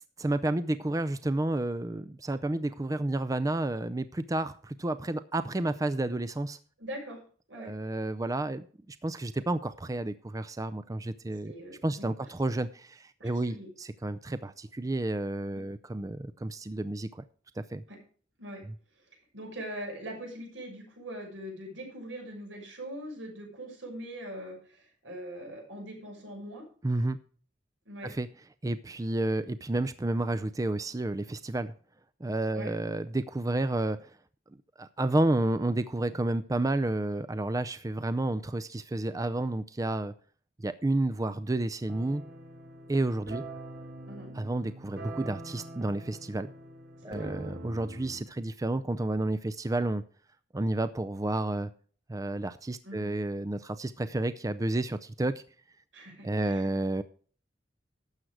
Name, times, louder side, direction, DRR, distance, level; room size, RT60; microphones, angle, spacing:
voice 1, 0.2-6.6 7.6-8.7 9.0-11.5 11.8-17.2 17.6-17.8 26.8-27.2 28.0-28.3 28.6-31.7 32.2-34.1 34.8-40.1 40.6-42.2 42.9-43.4 44.3-46.5 47.0-50.0 50.5-51.7 52.1-55.4 56.2-57.0, right 2 dB, 20° right, 13 dB, 0.4 m, -30 dB
voice 2, 6.8-7.2 7.5-7.7 11.5-12.1 13.2-13.7 15.5-15.6 17.9-18.0 18.4-18.6 19.3-26.6 27.9-28.1 32.5-32.7 44.1-44.3 47.1-47.3 52.8-53.1 55.9-56.7, right 1 dB, 85° right, 0 dB, 6.3 m, -42 dB
sound 1, 41.9-48.2, right 2 dB, 60° right, 2.7 m, -44 dB
12.0 x 7.9 x 4.8 m, 0.43 s
head